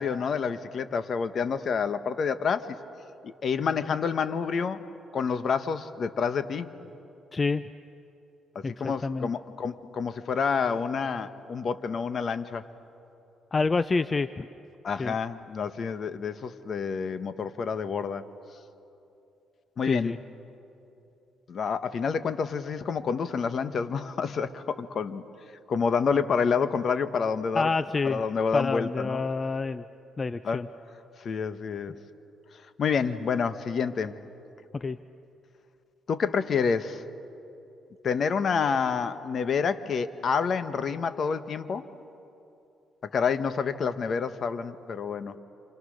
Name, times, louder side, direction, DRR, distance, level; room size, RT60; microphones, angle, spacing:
voice 1, 0.0-2.7 3.2-4.8 5.1-6.7 8.5-12.6 14.8-18.3 19.8-20.1 21.5-25.2 25.7-27.7 28.0-29.2 30.4-30.6 31.2-31.9 32.8-34.2 36.1-37.0 38.0-41.9 43.0-45.4, left 6 dB, 55° left, 11 dB, 1.2 m, -28 dB
voice 2, 7.3-7.7 8.6-9.3 13.5-14.5 15.0-15.2 19.9-20.2 27.5-28.2 28.5-29.8 30.2-30.7 34.7-35.0, left 4 dB, 30° left, 13 dB, 0.6 m, -28 dB
28.5 x 28.0 x 6.5 m, 2.8 s
cardioid pair, 90°, 0 cm